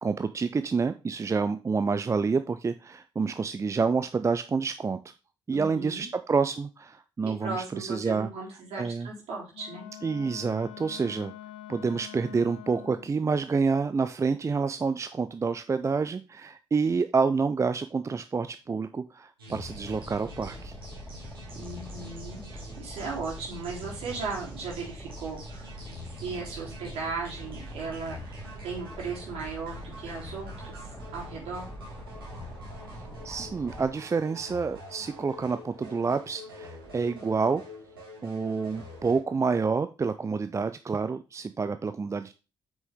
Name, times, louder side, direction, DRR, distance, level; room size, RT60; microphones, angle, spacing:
voice 1, 0.0-5.0 5.5-8.3 8.8-9.1 10.0-11.3 11.7-20.7 33.2-37.6 38.2-42.3, right 4 dB, 25° right, 11 dB, 0.5 m, -28 dB
voice 2, 5.5-6.1 7.2-9.9 21.5-25.7 26.2-28.4 28.6-31.7, right 4 dB, 60° right, -3 dB, 3.6 m, -37 dB
Wind instrument woodwind instrument, 9.5-13.2, left 12 dB, 65° left, 0.6 m, -45 dB
sound 1, 19.4-39.2, left 1 dB, 85° right, 2.1 m, -46 dB
Boat Water vehicle, 19.6-33.9, equal, 10° left, 3.5 m, -43 dB
8.2 x 6.2 x 3.6 m, 0.31 s
figure-of-eight pair, 45°, 12 cm